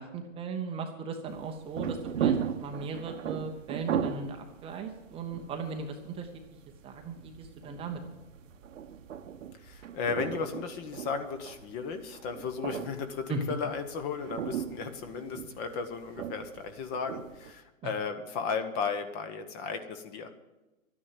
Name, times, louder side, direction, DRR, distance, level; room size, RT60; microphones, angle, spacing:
voice 1, 0.0-6.3 6.8-8.0 13.3-13.4 17.8-17.9, right 4 dB, 15° right, 4 dB, 0.8 m, -37 dB
sound 1, 1.3-17.5, right 8 dB, 65° right, 1.2 m, -37 dB
voice 2, 9.6-20.3, left 5 dB, 25° left, 9 dB, 1.0 m, -35 dB
12.0 x 9.9 x 7.4 m, 1.1 s
hypercardioid pair, 140°, 41 cm